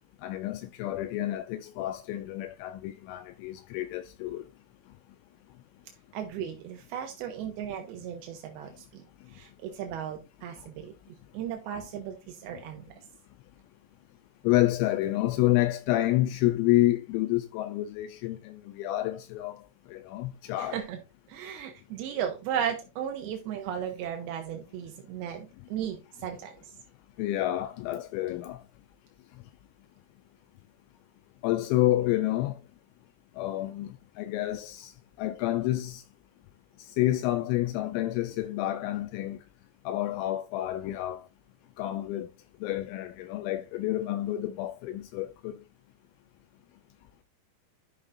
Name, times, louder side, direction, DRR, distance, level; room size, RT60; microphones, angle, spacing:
voice 1, 0.2-4.5 14.4-19.6 19.9-20.8 27.2-28.6 31.4-32.6 33.4-34.9 35.2-36.0 36.8-39.4 39.9-41.3 41.8-42.3 42.6-45.6, left 15 dB, 85° left, 2.7 m, -29 dB
voice 2, 6.1-9.0 9.3-10.9 11.3-12.9 20.6-21.0 21.3-26.5, right 9 dB, 80° right, 2.3 m, -35 dB
12.5 x 5.7 x 2.5 m
omnidirectional pair, 5.5 m